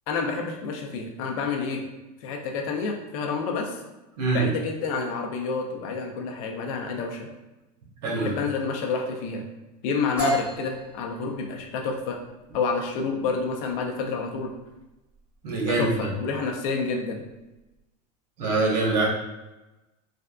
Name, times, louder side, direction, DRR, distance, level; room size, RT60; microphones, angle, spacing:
voice 1, 0.1-1.8 2.2-3.8 4.3-7.3 8.2-9.5 9.8-12.2 12.5-14.5 15.6-17.2, left 4 dB, 55° left, 2 dB, 0.6 m, -29 dB
voice 2, 8.0-8.4 15.4-15.9 18.4-19.1, right 3 dB, 80° right, -2 dB, 1.1 m, -24 dB
sound 1, 10.2-17.8, equal, 10° right, 1.1 m, -35 dB
3.3 x 2.5 x 2.3 m, 1.0 s
supercardioid pair, 155°, 21 cm